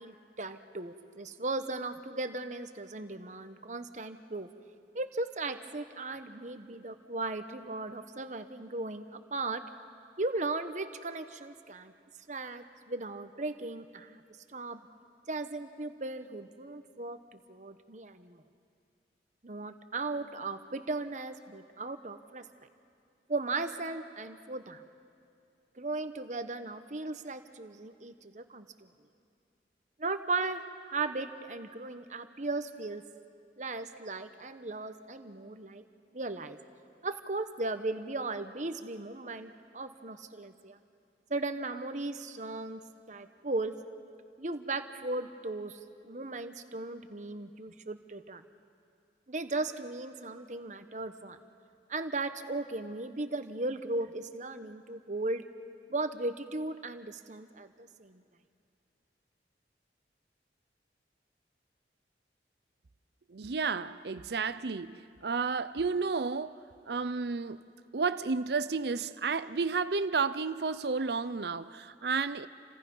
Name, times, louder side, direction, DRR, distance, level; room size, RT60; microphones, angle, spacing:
voice 1, 0.0-4.5 4.9-9.6 10.2-11.9 12.3-14.2 14.5-14.8 15.3-18.4 19.4-22.4 23.3-24.8 25.8-28.9 30.0-33.0 33.6-35.8 36.1-36.6 37.0-40.8 41.3-42.8 43.1-43.7 44.4-48.4 49.3-51.4 51.9-55.4 55.9-58.2, right 2 dB, 45° right, 9 dB, 1.1 m, -37 dB
voice 2, 63.3-66.6 66.9-67.6 67.9-72.5, right 4 dB, 65° right, 14 dB, 0.6 m, -32 dB
30.0 x 26.5 x 5.5 m, 2.5 s
head